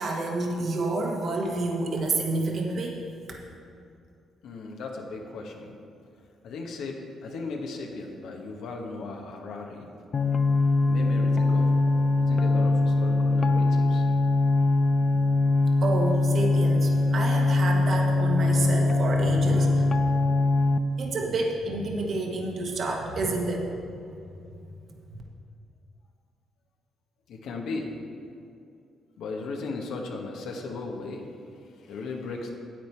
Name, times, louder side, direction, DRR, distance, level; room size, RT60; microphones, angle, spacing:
voice 1, 0.0-3.0 15.8-19.9 21.0-23.7 24.3-24.4, right 2 dB, 55° right, 1 dB, 1.4 m, -29 dB
voice 2, 4.4-5.7 6.4-9.9 10.8-11.7 12.2-14.1 27.3-27.9 29.2-32.5, left 3 dB, 80° left, 1 dB, 1.2 m, -36 dB
sound 1, 10.1-20.8, left 2 dB, 40° left, 0.4 m, -22 dB
9.2 x 8.4 x 4.5 m, 2.5 s
cardioid pair, 90°, 0 cm